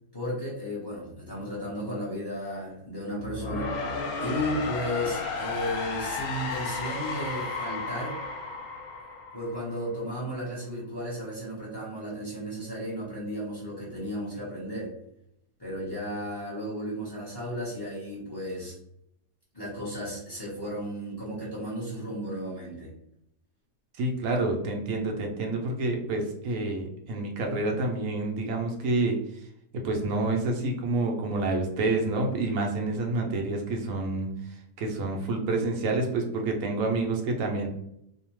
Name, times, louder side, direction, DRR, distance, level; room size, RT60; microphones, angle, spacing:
voice 1, 0.1-3.8 4.2-8.2 9.3-14.9 15.6-18.7 19.5-22.9, equal, 20° left, -7 dB, 0.7 m, -34 dB
sound 1, 3.2-10.1, left 4 dB, 70° left, 1.0 m, -33 dB
voice 2, 24.0-29.2 29.8-37.7, right 2 dB, 70° right, 2 dB, 0.8 m, -28 dB
2.7 x 2.1 x 2.9 m, 0.76 s
omnidirectional pair, 1.7 m